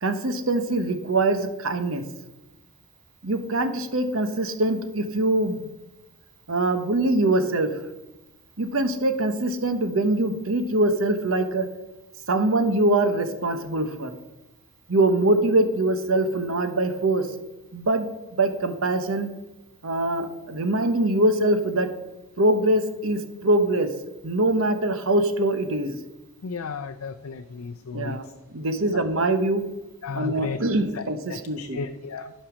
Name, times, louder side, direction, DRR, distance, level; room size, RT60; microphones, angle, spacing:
voice 1, 0.0-2.0 3.2-5.7 6.5-7.8 8.6-11.7 12.3-14.1 14.9-17.3 17.7-19.3 19.8-21.9 22.4-23.9 24.2-26.0 27.9-29.6 30.1-31.8, right 2 dB, 65° right, 8 dB, 0.9 m, -23 dB
voice 2, 26.4-28.2 30.0-30.6 30.9-31.0 31.3-32.3, left 5 dB, 75° left, 5 dB, 0.5 m, -34 dB
11.5 x 5.5 x 6.1 m, 1.0 s
head